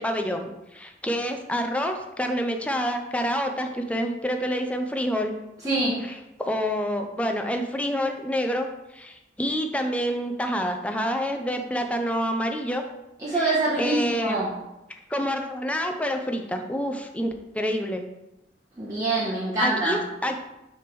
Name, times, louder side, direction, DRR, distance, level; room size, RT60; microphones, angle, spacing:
voice 1, 0.0-5.3 6.0-8.7 8.9-12.8 13.3-14.5 15.1-18.0 19.6-20.4, equal, 5° left, 4 dB, 0.5 m, -28 dB
voice 2, 5.6-6.0 13.2-14.5 18.8-20.0, right 2 dB, 20° right, -8 dB, 1.1 m, -25 dB
6.3 x 3.4 x 6.0 m, 0.94 s
head